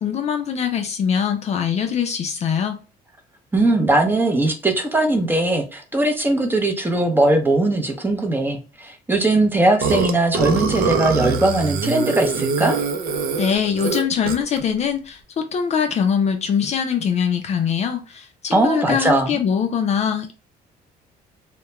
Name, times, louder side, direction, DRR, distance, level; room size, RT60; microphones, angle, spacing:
voice 1, 0.0-2.8 13.4-15.2 15.5-20.3, left 7 dB, 40° left, 0.4 m, -22 dB
voice 2, 3.5-12.8 18.5-19.4, right 2 dB, 10° right, 0.6 m, -19 dB
Burping eructation, 9.8-14.6, right 5 dB, 65° right, 0.5 m, -23 dB
2.2 x 2.1 x 2.9 m
cardioid pair, 110°, 17 cm